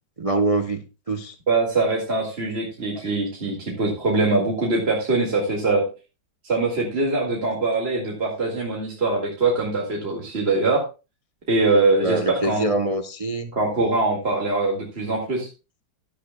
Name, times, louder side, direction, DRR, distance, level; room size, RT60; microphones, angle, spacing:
voice 1, 0.2-0.8 1.1-1.3 2.9-3.1 12.0-13.5, right 2 dB, 60° right, 0.3 m, -24 dB
voice 2, 1.5-5.8 6.4-10.8 11.5-12.7 13.5-15.5, right 3 dB, 35° right, 2.2 m, -22 dB
15.0 x 11.0 x 2.2 m
omnidirectional pair, 2.1 m